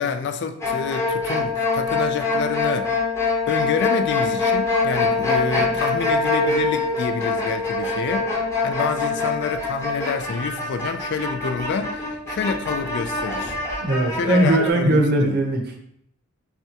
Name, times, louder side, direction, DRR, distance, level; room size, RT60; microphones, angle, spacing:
voice 1, 0.0-2.9 3.5-8.3 8.6-13.6 14.1-15.4, left 5 dB, 55° left, 0.3 m, -28 dB
sound 1, 0.6-14.7, left 3 dB, 15° left, 0.8 m, -24 dB
voice 2, 13.8-15.8, right 1 dB, 50° right, 0.7 m, -20 dB
5.8 x 2.3 x 2.8 m
head